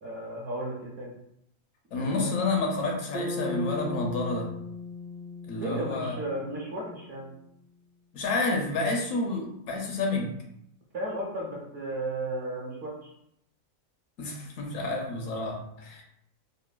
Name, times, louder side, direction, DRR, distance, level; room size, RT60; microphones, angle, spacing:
voice 1, 0.0-1.1 1.9-2.3 5.5-7.3 10.9-13.1, right 1 dB, 55° right, -3 dB, 0.8 m, -34 dB
voice 2, 1.9-4.5 5.5-6.2 8.1-10.3 14.2-16.0, left 2 dB, 75° left, 1 dB, 1.0 m, -29 dB
Bass guitar, 3.1-7.2, left 3 dB, 75° right, 0.4 m, -38 dB
3.1 x 2.1 x 2.2 m, 0.76 s
omnidirectional pair, 1.4 m